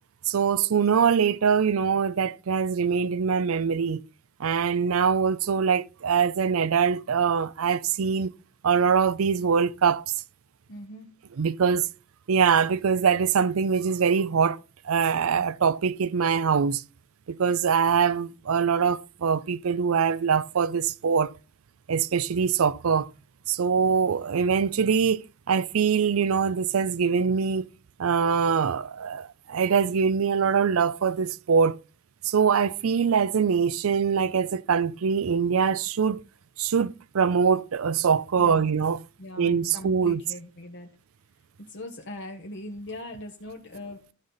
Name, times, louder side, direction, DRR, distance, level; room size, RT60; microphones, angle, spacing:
voice 1, 0.3-4.0 4.4-8.3 8.6-10.1 11.4-11.9 12.3-14.6 14.8-16.8 17.3-21.3 21.9-23.1 23.5-27.7 28.0-31.8 32.2-36.2 36.6-39.0 39.4-40.2, right 6 dB, 85° right, 0.5 m, -23 dB
voice 2, 10.7-11.1 38.4-38.7 39.2-41.0 41.6-44.1, left 1 dB, 60° left, 1.1 m, -40 dB
13.0 x 5.5 x 4.0 m
head